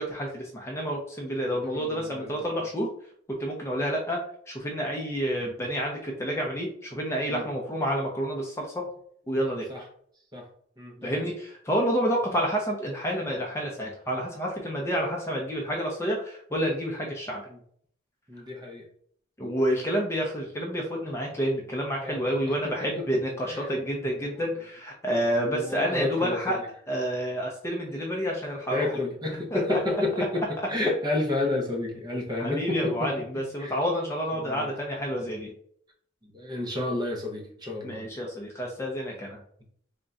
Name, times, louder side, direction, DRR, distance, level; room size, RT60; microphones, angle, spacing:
voice 1, 0.0-2.9 3.4-4.2 4.5-8.8 9.3-9.8 11.0-17.4 19.4-26.6 26.9-28.9 29.5-29.8 32.4-35.5 37.8-39.4, equal, 15° left, -1 dB, 0.5 m, -29 dB
voice 2, 1.5-2.3 7.3-7.5 9.7-9.8 10.3-10.4 10.8-11.3 18.3-18.9 22.0-22.2 22.6-23.1 23.5-23.7 24.3-24.4 25.5-26.4 28.7-30.4 30.7-33.1 33.6-33.7 34.4-34.7 36.3-38.0, left 2 dB, 20° right, 0 dB, 0.7 m, -30 dB
3.6 x 2.2 x 3.9 m, 0.63 s
head